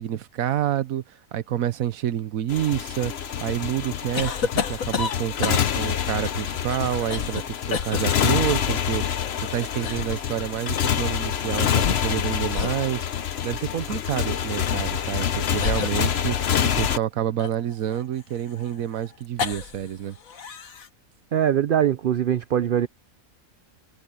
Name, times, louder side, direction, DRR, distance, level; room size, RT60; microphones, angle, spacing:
voice 1, 0.0-3.1 3.4-13.1 13.4-20.2, right 11 dB, 85° right, 1.3 m, -28 dB
Motorcycle, 2.5-17.0, left 9 dB, 55° left, 1.0 m, -26 dB
sound 1, 4.1-5.9 6.7-7.4 7.7-8.0 9.2-10.2 11.6-12.2 12.5-12.8 13.4-13.6 14.7-14.8 15.6-16.8 17.4-19.9 20.2-20.9, left 6 dB, 80° left, 1.7 m, -31 dB
voice 2, 21.3-22.9, right 10 dB, 55° right, 0.6 m, -22 dB
omnidirectional pair, 1.4 m